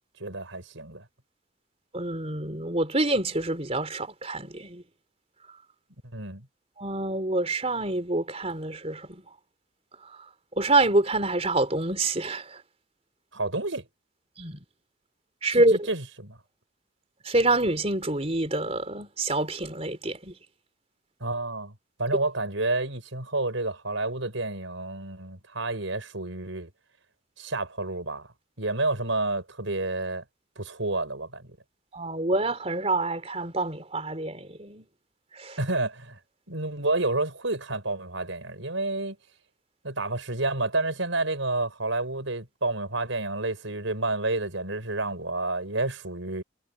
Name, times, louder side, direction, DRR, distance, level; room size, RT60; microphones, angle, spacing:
voice 1, 0.2-1.1 6.1-6.5 13.3-13.9 15.5-16.4 21.2-21.7 22.0-26.7 27.4-30.2 30.6-31.5 35.6-36.2 36.5-39.2 39.8-46.4, right 2 dB, 75° right, 5.4 m, -30 dB
voice 2, 1.9-4.8 6.8-9.2 10.6-12.6 14.4-14.6 15.4-15.7 17.2-20.3 31.9-34.9 35.3-35.6, right 2 dB, 30° right, 4.0 m, -26 dB
head